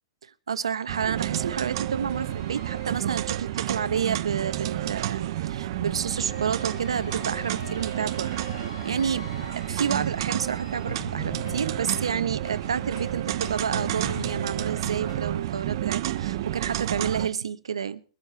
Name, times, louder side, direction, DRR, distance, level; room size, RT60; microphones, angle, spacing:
voice 1, 0.2-8.3 8.8-9.3 9.7-18.0, right 7 dB, 80° right, 1.1 m, -30 dB
sound 1, 0.9-17.3, right 13 dB, 55° right, 0.9 m, -30 dB
sound 2, 2.1-4.3 6.1-15.3, left 2 dB, 80° left, 5.8 m, -43 dB
23.0 x 8.2 x 4.2 m
hypercardioid pair, 110°, 3 cm